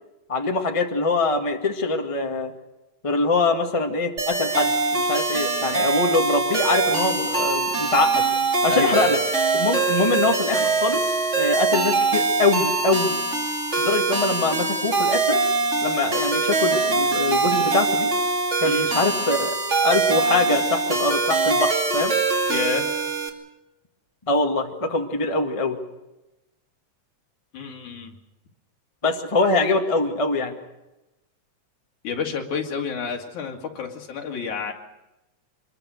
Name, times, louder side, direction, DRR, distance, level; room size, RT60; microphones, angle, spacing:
voice 1, 0.3-2.5 3.0-8.2 8.6-9.2 9.5-13.2 13.8-15.4 15.8-18.1 18.6-19.5 19.8-22.1 24.3-25.8 29.0-30.5, left 3 dB, 15° left, 2 dB, 1.4 m, -23 dB
sound 1, 4.2-23.3, right 3 dB, 25° right, 2.4 m, -23 dB
voice 2, 8.7-9.2 18.6-18.9 22.5-22.9 27.5-28.1 32.0-34.7, left 6 dB, 75° left, 1 dB, 3.6 m, -29 dB
25.5 x 22.0 x 6.5 m, 0.98 s
omnidirectional pair, 3.4 m